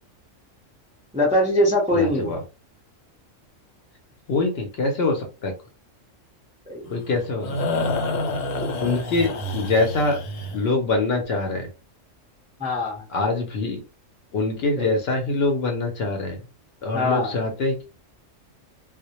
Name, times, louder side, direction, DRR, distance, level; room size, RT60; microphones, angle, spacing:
voice 1, 1.1-2.3 6.7-6.8 8.5-8.7 12.6-13.1 14.8-14.9 16.9-17.3, left 1 dB, 10° right, -2 dB, 0.4 m, -22 dB
voice 2, 1.9-2.4 4.3-5.5 6.9-7.6 8.8-10.2 10.5-11.7 13.1-13.8 14.3-16.4 16.8-17.8, left 3 dB, 60° left, 3 dB, 0.7 m, -24 dB
sound 1, 6.9-10.7, left 2 dB, 90° left, 1.0 m, -28 dB
2.1 x 2.1 x 2.8 m, 0.32 s
omnidirectional pair, 1.3 m